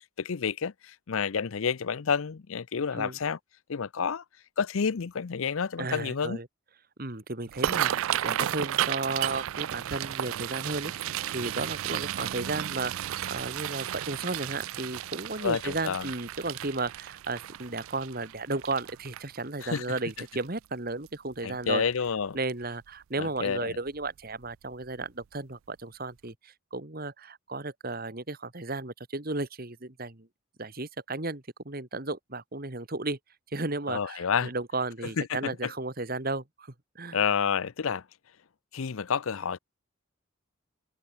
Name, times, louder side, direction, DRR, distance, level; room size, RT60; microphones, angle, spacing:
voice 1, 0.0-3.4 3.7-4.2 4.6-6.4 15.4-16.1 19.6-20.0 21.4-22.4 23.2-23.8 33.9-34.5 35.2-35.7 37.1-38.0 38.7-39.6, left 6 dB, 70° left, 0.6 m, -29 dB
voice 2, 5.8-6.5 7.0-21.8 22.3-30.3 30.6-33.2 33.5-37.2, right 2 dB, 45° right, 1.8 m, -34 dB
sound 1, 7.5-20.6 21.1-21.3 21.7-22.1 22.5-22.6 23.9-24.1 24.4-24.5 25.0-25.1, right 11 dB, 70° right, 0.3 m, -33 dB
head